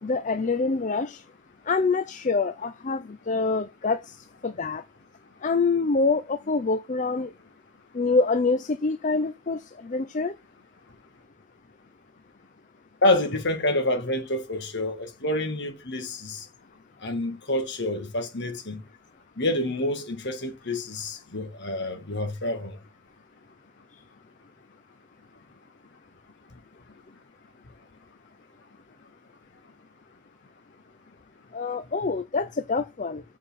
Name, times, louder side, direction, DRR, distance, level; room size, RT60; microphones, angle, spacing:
voice 1, 0.0-1.2 1.7-4.2 4.4-4.8 5.4-7.3 7.9-10.3 31.5-33.2, left 4 dB, 35° left, 0.5 m, -26 dB
voice 2, 13.0-16.5 17.0-18.8 19.4-22.8, left 1 dB, 50° left, 2.0 m, -27 dB
7.2 x 4.8 x 5.7 m
head